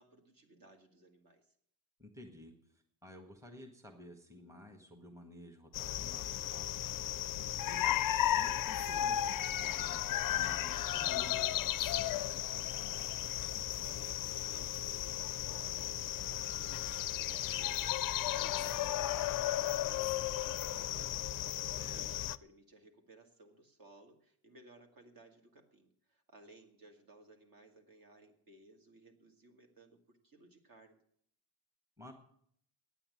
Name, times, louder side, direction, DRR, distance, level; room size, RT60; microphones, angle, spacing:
voice 1, 0.0-1.5 7.4-7.9 13.5-31.0, right 2 dB, 45° right, 3 dB, 2.1 m, -60 dB
voice 2, 2.0-6.7 7.3-13.0 21.6-22.0 32.0-32.1, left 1 dB, 5° right, 3 dB, 1.7 m, -54 dB
sound 1, 5.7-22.4, left 13 dB, 45° left, 0.4 m, -35 dB
9.3 x 8.7 x 9.8 m, 0.67 s
cardioid pair, 120°, 48 cm